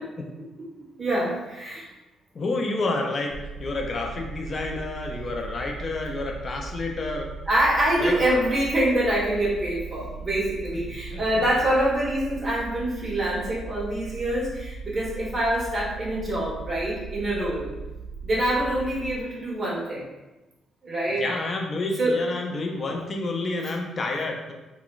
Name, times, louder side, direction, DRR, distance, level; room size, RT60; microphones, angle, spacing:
voice 1, 1.0-1.8 7.5-17.7 18.2-20.1 20.8-21.2 22.0-22.2, right 1 dB, 30° right, -6 dB, 1.4 m, -25 dB
voice 2, 2.3-3.3 3.6-7.3 8.0-8.2 10.9-11.4 21.2-24.5, left 2 dB, 40° left, 2 dB, 0.5 m, -29 dB
sound 1, 3.3-19.1, right 4 dB, 70° right, 0.7 m, -38 dB
3.6 x 2.2 x 2.4 m, 1.1 s
cardioid pair, 90°, 0 cm